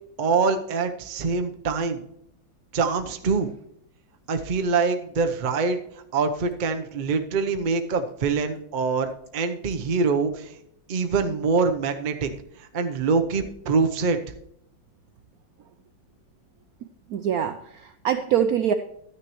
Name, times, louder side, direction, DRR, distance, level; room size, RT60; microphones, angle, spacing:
voice 1, 0.2-2.0 2.7-3.5 4.3-5.8 6.1-10.5 10.9-12.3 12.6-14.2, right 4 dB, 45° right, 6 dB, 0.6 m, -24 dB
voice 2, 17.1-18.7, right 9 dB, 75° right, 8 dB, 0.8 m, -24 dB
12.5 x 9.8 x 3.1 m, 0.74 s
omnidirectional pair, 2.1 m